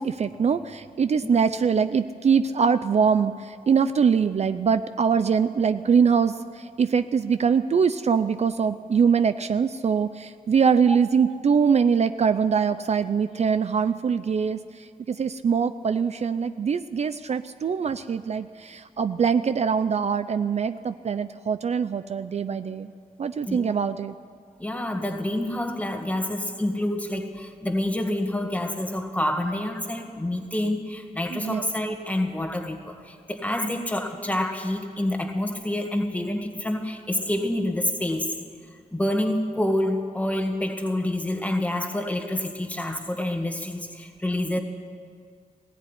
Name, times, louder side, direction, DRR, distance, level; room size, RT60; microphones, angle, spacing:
voice 1, 0.0-14.6 15.1-22.9 23.2-24.1 31.3-31.6, right 6 dB, 50° right, 12 dB, 0.5 m, -23 dB
voice 2, 24.6-38.3 38.9-44.6, left 1 dB, 10° left, 4 dB, 1.8 m, -27 dB
19.5 x 17.5 x 9.9 m, 2.1 s
wide cardioid pair, 180°, 15 cm